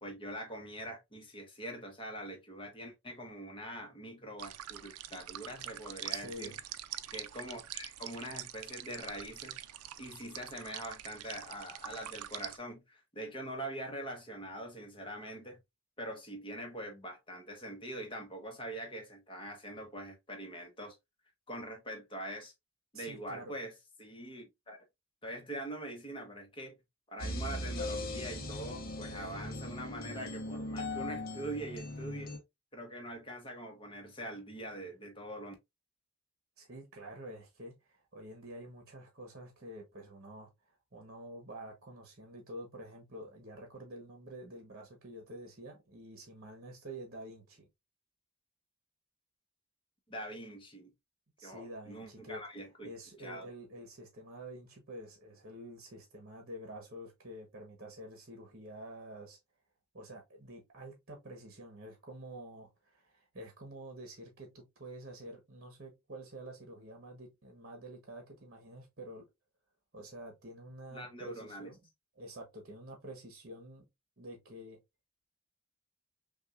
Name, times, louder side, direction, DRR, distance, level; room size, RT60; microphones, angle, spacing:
voice 1, 0.0-6.6 7.1-9.6 10.0-15.6 16.0-21.0 21.5-22.5 22.9-23.7 24.0-24.8 25.2-26.8 27.1-32.4 32.7-35.5 50.1-50.9 51.4-52.9 53.2-53.5 70.9-71.7, right 1 dB, 25° left, 1.1 m, -43 dB
sound 1, 4.4-12.6, right 12 dB, 85° right, 0.4 m, -45 dB
voice 2, 6.1-6.6 22.9-23.5 29.1-29.3 36.6-40.5 40.9-47.7 51.4-52.4 52.8-59.4 59.9-69.2 69.9-71.8 72.2-73.8 74.2-74.8, right 1 dB, 45° right, 1.1 m, -48 dB
sound 2, 27.2-32.4, left 1 dB, 40° left, 0.8 m, -39 dB
6.0 x 2.4 x 2.4 m
head